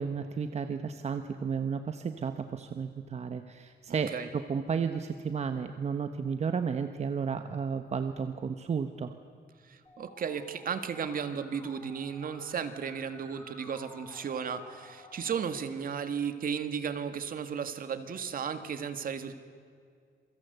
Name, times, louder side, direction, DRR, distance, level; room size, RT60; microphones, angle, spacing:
voice 1, 0.0-9.1, right 6 dB, 40° right, 8 dB, 1.1 m, -33 dB
voice 2, 3.9-4.3 9.6-19.4, right 7 dB, 55° right, 9 dB, 1.9 m, -35 dB
Musical instrument, 9.9-15.4, left 1 dB, 15° left, 5.5 m, -53 dB
27.5 x 24.0 x 8.1 m, 2.2 s
wide cardioid pair, 150°, 17 cm